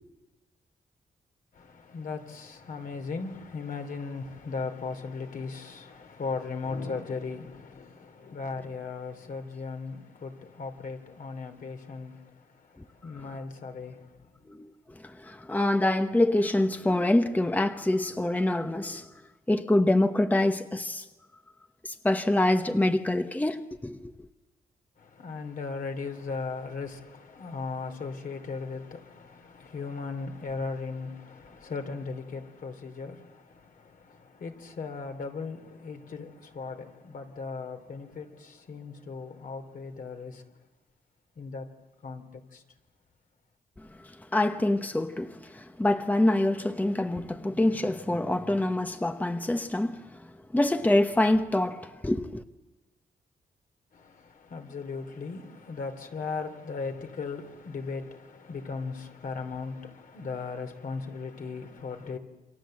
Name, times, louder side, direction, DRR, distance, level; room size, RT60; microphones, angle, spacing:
voice 1, 1.5-14.6 25.0-40.5 41.4-41.7 42.0-42.6 53.9-62.2, left 4 dB, 60° left, 3.0 m, -37 dB
voice 2, 14.5-19.1 19.5-21.1 21.8-24.1 43.8-52.4, left 1 dB, 10° left, 1.0 m, -26 dB
28.5 x 25.5 x 7.8 m
wide cardioid pair, 120°, 15 cm